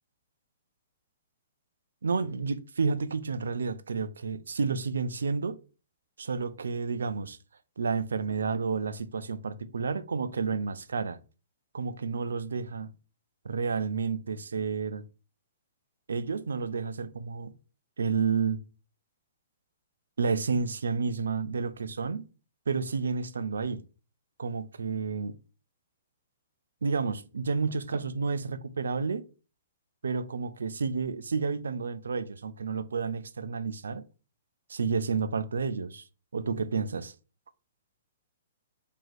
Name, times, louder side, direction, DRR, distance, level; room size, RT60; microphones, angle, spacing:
voice 1, 2.0-5.6 6.2-7.4 7.8-11.2 11.7-12.9 13.4-15.0 16.1-17.5 18.0-18.6 20.2-22.3 22.7-23.8 24.4-25.3 26.8-29.2 30.0-34.1 34.7-36.1 36.3-37.1, right 5 dB, 75° right, 0.4 m, -30 dB
3.0 x 2.7 x 4.0 m
hypercardioid pair, 120°, 0 cm